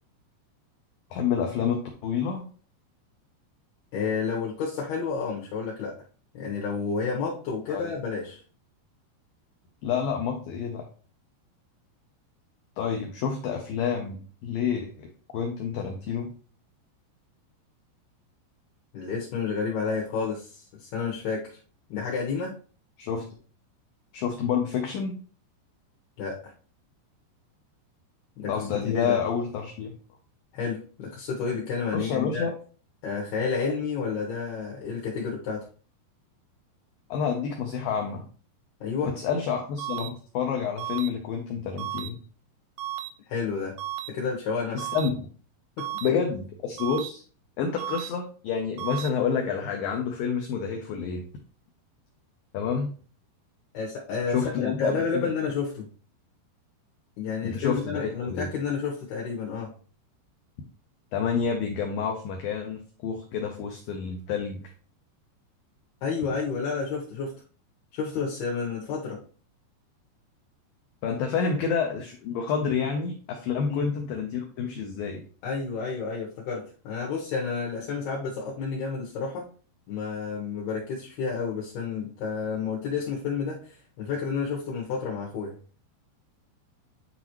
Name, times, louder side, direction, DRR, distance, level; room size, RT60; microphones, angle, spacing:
voice 1, 1.1-2.5 7.7-7.9 9.8-10.9 12.8-15.1 15.3-16.3 23.0-23.2 24.1-25.2 28.5-29.9 31.9-32.5 37.1-38.3 39.0-42.2 44.7-45.3 46.0-47.2 47.6-51.2 52.5-52.9 54.3-55.3 57.4-58.5 61.1-64.6 71.0-75.2, left 6 dB, 90° left, 2 dB, 2.0 m, -29 dB
voice 2, 3.9-6.0 6.3-8.4 18.9-21.6 21.9-22.5 26.2-26.5 28.4-29.2 30.5-32.5 33.0-35.7 38.8-39.2 43.3-43.8 44.1-44.8 45.8-45.9 53.7-55.9 57.2-59.7 66.0-67.3 67.9-69.2 73.7-73.9 75.4-79.5 79.9-85.6, left 5 dB, 70° left, -3 dB, 2.7 m, -30 dB
sound 1, 39.8-40.1 40.8-41.1 41.8-42.1 42.8-43.1 43.8-44.1 44.8-45.1 45.8-46.1 46.8-47.1 47.8-48.1 48.8-49.1, right 13 dB, 85° right, 2.3 m, -33 dB
9.5 x 4.0 x 3.0 m, 0.40 s
omnidirectional pair, 5.2 m